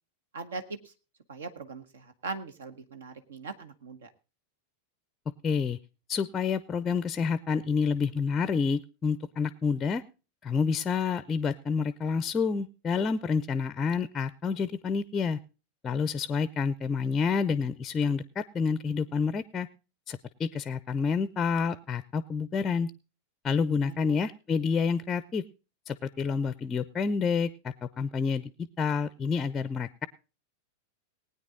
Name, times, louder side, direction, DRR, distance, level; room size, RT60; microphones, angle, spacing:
voice 1, 0.3-0.9 1.3-4.1 23.8-24.1, right 4 dB, 65° right, 9 dB, 1.4 m, -40 dB
voice 2, 5.4-5.8 6.1-10.0 10.4-15.4 15.8-19.7 20.1-22.9 23.4-25.4 25.9-27.5 27.8-30.1, left 5 dB, 20° left, 16 dB, 0.6 m, -28 dB
19.5 x 9.3 x 3.8 m, 0.33 s
figure-of-eight pair, 90°, 0 cm